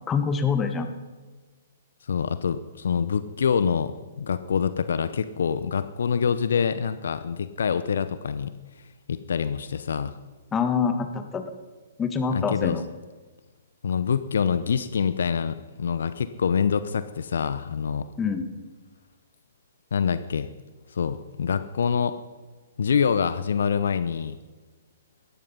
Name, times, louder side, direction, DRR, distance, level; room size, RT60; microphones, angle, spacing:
voice 1, 0.1-0.9 10.5-11.4 12.0-12.8 18.2-18.5, left 6 dB, 15° left, 7 dB, 1.7 m, -25 dB
voice 2, 2.1-8.6 9.1-10.2 12.3-12.8 13.8-18.1 19.9-20.5 20.9-22.2 22.8-24.4, left 6 dB, 65° left, 13 dB, 0.8 m, -25 dB
17.5 x 14.0 x 5.6 m, 1.3 s
figure-of-eight pair, 120°, 0 cm